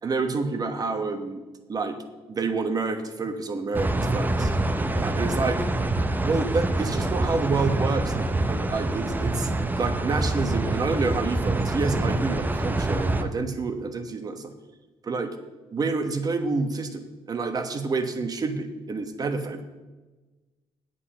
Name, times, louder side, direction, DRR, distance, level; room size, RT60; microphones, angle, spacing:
voice 1, 0.0-1.4 1.7-2.0 2.3-4.5 4.9-5.6 6.2-14.5 15.0-15.3 15.7-19.6, right 4 dB, 40° right, 8 dB, 1.1 m, -28 dB
sound 1, 3.7-13.2, right 2 dB, 15° right, 0.7 m, -26 dB
8.4 x 7.8 x 5.7 m, 1.2 s
cardioid pair, 95°, 10 cm